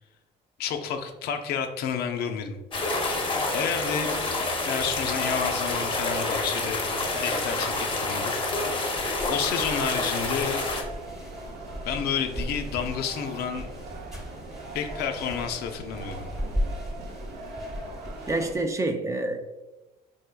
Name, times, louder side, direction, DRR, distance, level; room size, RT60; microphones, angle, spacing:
voice 1, 0.6-2.6 3.5-4.2 4.7-6.8 7.1-8.3 9.3-10.6 11.8-13.7 14.7-16.3, left 7 dB, 75° left, 6 dB, 0.4 m, -30 dB
sound 1, 2.7-10.8, left 2 dB, 30° left, 0.6 m, -28 dB
sound 2, 5.0-18.5, right 2 dB, 75° right, 0.6 m, -41 dB
sound 3, 8.9-18.6, equal, ahead, 1.0 m, -37 dB
voice 2, 18.3-19.4, right 2 dB, 20° right, 5 dB, 0.3 m, -27 dB
3.6 x 3.4 x 2.2 m, 1.0 s
cardioid pair, 110°, 17 cm